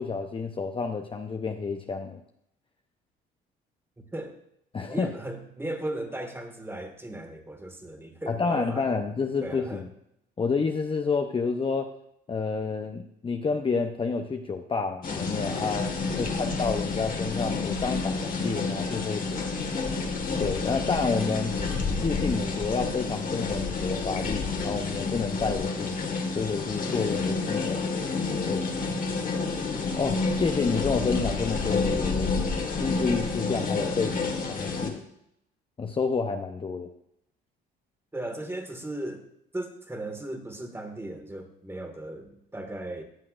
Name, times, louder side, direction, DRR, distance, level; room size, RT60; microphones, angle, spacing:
voice 1, 0.0-2.2 4.7-5.1 8.3-9.9 10.4-11.9 12.3-15.9 16.2-19.4 20.4-21.6 22.0-26.0 26.3-27.9 28.5-28.6 30.0-32.4 32.8-35.0 35.8-36.9, left 4 dB, 25° left, 5 dB, 0.7 m, -29 dB
voice 2, 4.9-9.0 9.4-9.8 16.1-16.6 38.1-39.2 39.5-43.0, right 1 dB, 10° right, 5 dB, 1.7 m, -37 dB
sound 1, 15.0-34.9, left 4 dB, 40° left, 1.6 m, -29 dB
14.5 x 7.4 x 2.5 m, 0.76 s
supercardioid pair, 70°, 21 cm